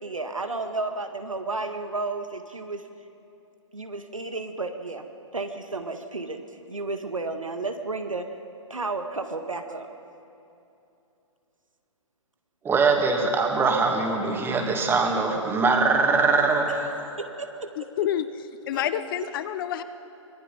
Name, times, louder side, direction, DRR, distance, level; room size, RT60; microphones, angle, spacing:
voice 1, 0.0-2.9 3.7-5.1 5.3-6.4 6.7-8.3 8.7-9.9 17.2-17.7 18.7-18.8, right 3 dB, 90° right, 6 dB, 1.8 m, -32 dB
voice 2, 12.6-16.9, right 4 dB, 15° right, 2 dB, 2.5 m, -22 dB
voice 3, 17.8-18.3 18.7-19.8, left 11 dB, 45° left, 11 dB, 0.9 m, -28 dB
24.5 x 19.5 x 5.5 m, 2.7 s
figure-of-eight pair, 125°, 16 cm